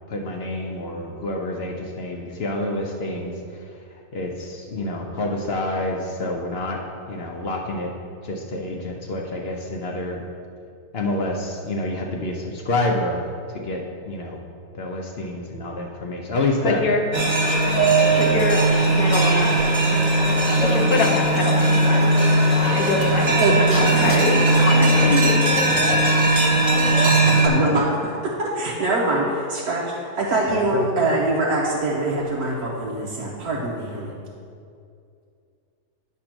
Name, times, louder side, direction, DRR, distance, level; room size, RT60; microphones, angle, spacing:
voice 1, 0.1-6.8 7.1-7.9 8.2-10.2 10.9-14.4 14.7-16.8 27.2-27.8 30.5-30.9, left 2 dB, 55° left, 1 dB, 0.8 m, -28 dB
voice 2, 16.6-17.0 17.6-17.8 18.1-19.5 20.6-22.1 22.5-25.4, left 3 dB, 70° left, 3 dB, 1.3 m, -25 dB
sound 1, 17.1-27.5, right 2 dB, 20° right, 0.9 m, -18 dB
voice 3, 27.0-27.9 28.2-34.1, right 2 dB, 80° right, -4 dB, 1.4 m, -24 dB
10.0 x 3.4 x 5.9 m, 2.4 s
omnidirectional pair, 1.6 m